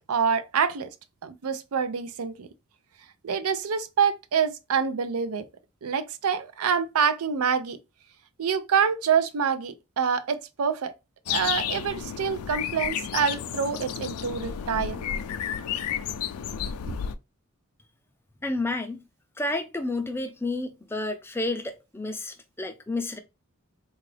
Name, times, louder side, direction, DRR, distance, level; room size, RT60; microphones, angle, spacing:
voice 1, 0.1-0.9 1.2-2.5 3.2-5.4 5.8-7.8 8.4-10.9 11.3-15.1 16.8-16.9, right 6 dB, 80° right, 0.5 m, -26 dB
sound 1, 11.3-17.2, left 9 dB, 85° left, 0.4 m, -31 dB
voice 2, 18.4-19.0 19.4-23.2, left 2 dB, 10° left, 0.4 m, -30 dB
3.7 x 2.4 x 3.2 m
head